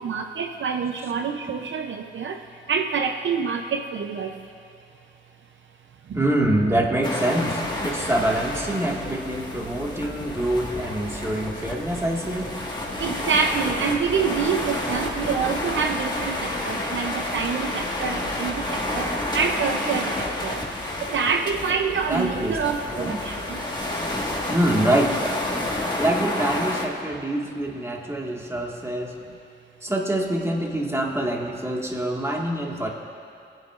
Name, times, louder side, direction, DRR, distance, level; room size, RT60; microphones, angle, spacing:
voice 1, 0.0-2.4 2.7-4.3 6.1-6.3 13.0-20.1 20.4-20.6 21.0-23.6, right 6 dB, 75° right, 5 dB, 0.5 m, -26 dB
voice 2, 6.1-12.5 22.1-23.2 24.5-25.2 25.9-29.1 29.8-32.9, right 1 dB, 15° right, 0 dB, 1.6 m, -25 dB
sound 1, 7.0-26.9, left 1 dB, 20° left, 1.5 m, -30 dB
sound 2, 7.6-25.9, left 2 dB, 85° left, 1.1 m, -40 dB
18.0 x 9.0 x 2.4 m, 2.5 s
cardioid pair, 55°, 20 cm